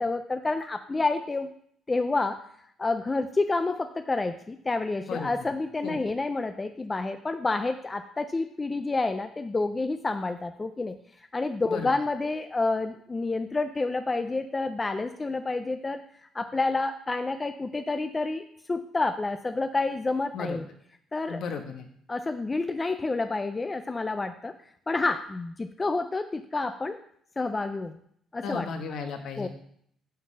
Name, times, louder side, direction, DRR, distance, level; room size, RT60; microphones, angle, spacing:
voice 1, 0.0-1.5 1.9-2.4 2.8-11.0 11.3-16.0 16.3-20.7 21.1-21.4 22.1-24.5 24.9-27.0 27.4-28.0 28.3-28.7 29.4-29.5, left 3 dB, 15° left, 8 dB, 0.3 m, -29 dB
voice 2, 21.3-21.9 28.4-29.5, left 5 dB, 55° left, 5 dB, 1.2 m, -34 dB
9.3 x 4.0 x 6.4 m, 0.66 s
cardioid pair, 170°, 0 cm